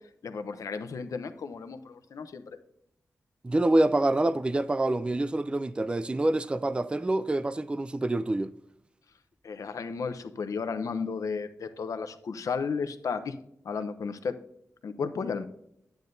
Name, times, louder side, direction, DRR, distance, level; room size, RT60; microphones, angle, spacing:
voice 1, 0.2-2.4 9.4-13.3 13.6-14.4 14.8-15.5, left 5 dB, 75° left, 0.8 m, -33 dB
voice 2, 3.4-8.5, right 2 dB, 20° right, 0.4 m, -26 dB
11.5 x 9.1 x 2.7 m
wide cardioid pair, 105°, 6 cm